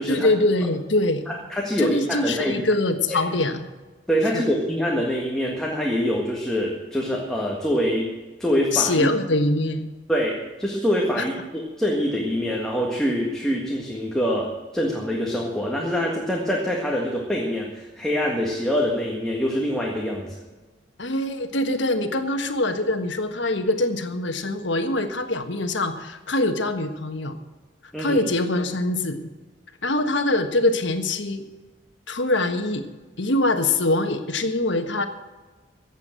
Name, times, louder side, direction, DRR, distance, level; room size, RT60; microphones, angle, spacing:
voice 1, 0.1-1.4 1.8-3.7 4.3-4.4 8.7-9.9 11.2-11.3 21.0-27.4 28.0-29.3 29.8-31.4 32.1-32.9 33.2-35.1, left 2 dB, 70° left, 7 dB, 1.4 m, -23 dB
voice 2, 1.3-2.6 3.1-3.2 4.1-8.1 8.4-9.1 10.1-20.3 27.9-28.2, equal, 5° left, -2 dB, 1.7 m, -25 dB
15.0 x 8.2 x 7.7 m, 1.2 s
head